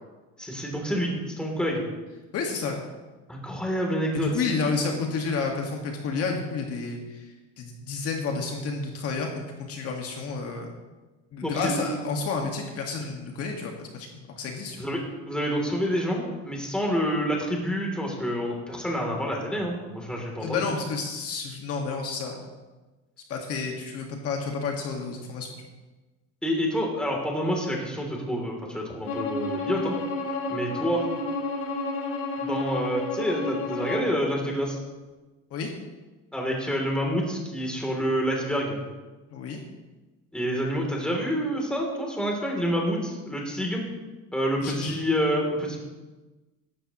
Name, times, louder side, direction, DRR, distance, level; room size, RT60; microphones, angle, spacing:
voice 1, 0.4-1.1 1.4-1.8 3.3-4.4 11.4-11.9 14.7-15.0 15.3-20.7 26.4-29.9 30.5-31.0 32.4-34.8 36.3-38.8 40.3-43.8 44.3-45.8, equal, 5° left, -1 dB, 3.0 m, -28 dB
voice 2, 2.3-2.8 4.1-7.3 7.6-10.7 11.3-14.9 20.4-22.4 23.3-25.5 35.5-35.7 39.3-39.6 44.6-45.0, left 4 dB, 50° left, 1 dB, 1.8 m, -30 dB
Bowed string instrument, 29.0-34.1, left 2 dB, 80° left, 3.0 m, -31 dB
16.0 x 12.5 x 3.0 m, 1.2 s
cardioid pair, 135°, 31 cm